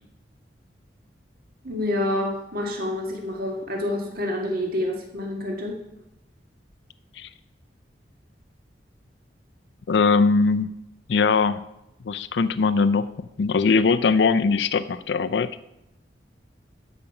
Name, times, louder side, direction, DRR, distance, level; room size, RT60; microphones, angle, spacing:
voice 1, 1.6-5.8, left 1 dB, 55° right, 0 dB, 1.8 m, -28 dB
voice 2, 9.9-10.7 11.1-11.6 12.0-15.5, left 4 dB, 75° left, 12 dB, 0.4 m, -21 dB
12.5 x 5.2 x 5.8 m, 0.87 s
head